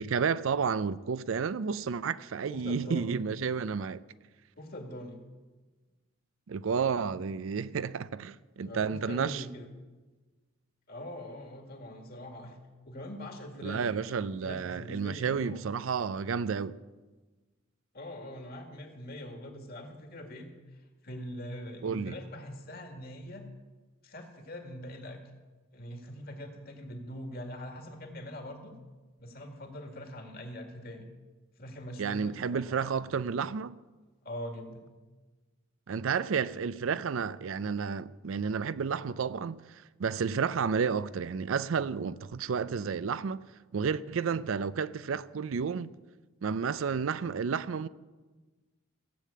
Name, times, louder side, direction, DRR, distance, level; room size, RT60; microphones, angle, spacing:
voice 1, 0.0-4.0 6.5-9.4 13.6-16.8 21.8-22.1 32.0-33.8 35.9-43.4 43.7-45.9 46.4-47.9, right 6 dB, 70° right, 0.4 m, -31 dB
voice 2, 2.5-3.2 4.6-5.2 8.6-9.7 10.9-12.6 12.8-15.7 17.9-23.4 24.0-25.2 25.7-28.7 29.2-31.1 31.6-33.0 34.2-34.8, left 1 dB, 45° left, 2.0 m, -43 dB
15.5 x 7.5 x 8.5 m
head